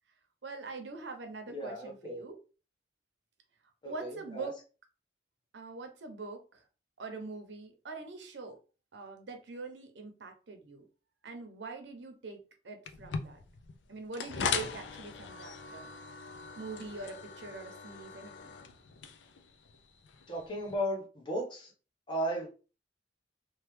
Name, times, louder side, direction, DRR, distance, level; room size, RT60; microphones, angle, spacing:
voice 1, 0.4-2.4 3.8-4.6 5.5-6.6 7.0-8.6 8.9-10.8 11.2-13.4 13.9-15.9 16.6-18.5, right 3 dB, 80° right, 0.7 m, -43 dB
voice 2, 1.5-2.2 3.8-4.5 20.3-21.7 22.1-22.5, equal, 25° left, 0.8 m, -35 dB
sound 1, 12.8-20.7, left 5 dB, 85° left, 0.4 m, -40 dB
3.0 x 2.2 x 3.1 m
head